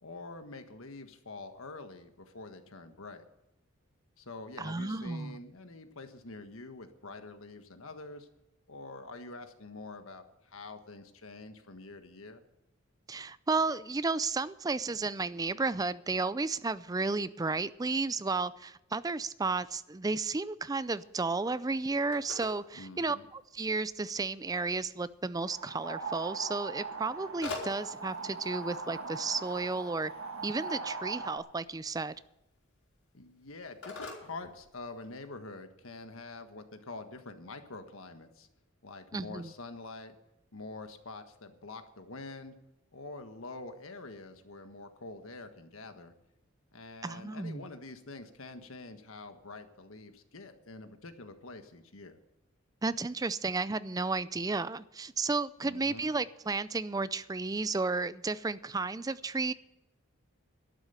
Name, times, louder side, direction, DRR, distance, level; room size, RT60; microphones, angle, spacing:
voice 1, 0.0-3.2 4.2-8.3 8.7-12.4 22.7-23.3 33.1-38.5 38.8-40.2 40.5-42.6 42.9-46.1 46.7-52.2 55.6-56.1, left 3 dB, 75° left, 1.5 m, -46 dB
voice 2, 4.6-5.4 13.1-30.1 30.4-32.2 39.1-39.5 47.0-47.6 52.8-59.5, right 3 dB, 15° right, 0.4 m, -33 dB
Telephone, 20.8-35.3, left 3 dB, 90° left, 4.9 m, -49 dB
sound 1, 25.5-31.4, right 4 dB, 70° right, 1.9 m, -40 dB
12.0 x 10.5 x 6.8 m
head